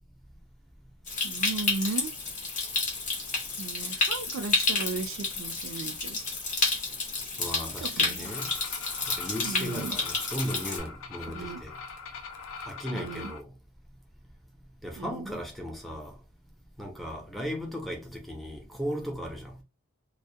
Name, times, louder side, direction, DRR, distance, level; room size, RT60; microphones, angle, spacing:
Stream, 1.1-10.8, left 3 dB, 35° left, 0.8 m, -30 dB
voice 1, 1.2-2.1 3.6-6.3 7.8-8.4 9.4-10.0 11.3-11.6 12.9-13.3 15.0-15.3, right 4 dB, 60° right, 0.4 m, -36 dB
voice 2, 7.4-8.5 9.2-11.7 12.7-13.5 14.8-16.1 16.8-19.6, equal, ahead, 0.6 m, -36 dB
sound 1, 8.2-13.4, left 5 dB, 60° left, 0.4 m, -42 dB
2.2 x 2.0 x 2.7 m
head